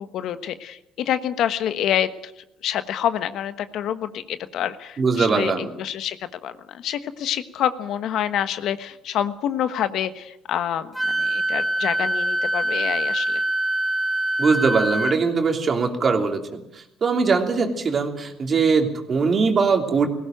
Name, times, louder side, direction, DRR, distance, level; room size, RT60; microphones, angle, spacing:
voice 1, 0.0-2.3 2.6-6.2 6.4-13.4 17.5-17.7, left 10 dB, 70° left, 12 dB, 1.3 m, -27 dB
voice 2, 5.0-5.7 14.4-16.6 17.0-20.1, right 5 dB, 40° right, 5 dB, 3.0 m, -21 dB
Wind instrument woodwind instrument, 10.9-15.2, right 1 dB, ahead, 1.9 m, -24 dB
19.0 x 16.5 x 9.2 m, 0.83 s
cardioid pair, 85°, 0 cm